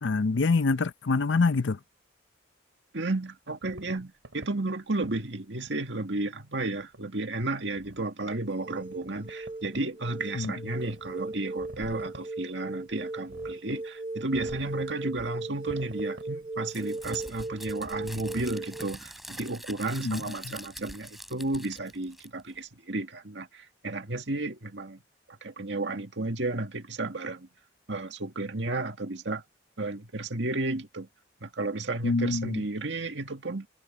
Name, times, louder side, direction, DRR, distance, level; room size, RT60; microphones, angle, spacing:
voice 1, 0.0-1.8 10.3-10.5 20.0-20.5 32.0-32.6, left 3 dB, 75° left, 0.6 m, -26 dB
voice 2, 2.9-25.0 25.4-27.5 27.9-29.4 29.8-31.1 31.4-33.7, right 2 dB, 70° right, 2.0 m, -33 dB
sound 1, 3.6-4.5 5.0-5.3 5.7-5.8 6.6-7.0 7.5-8.0 8.3-8.4 8.8-9.8 10.1-10.2 10.4-12.2 12.7-13.8 14.3-15.3 15.7-16.6 17.0-17.2 17.7-18.7, right 1 dB, 85° right, 3.5 m, -47 dB
sound 2, 8.3-18.9, right 2 dB, 25° right, 1.0 m, -38 dB
Crumpling crinkling, 16.7-22.6, equal, ahead, 6.4 m, -45 dB
head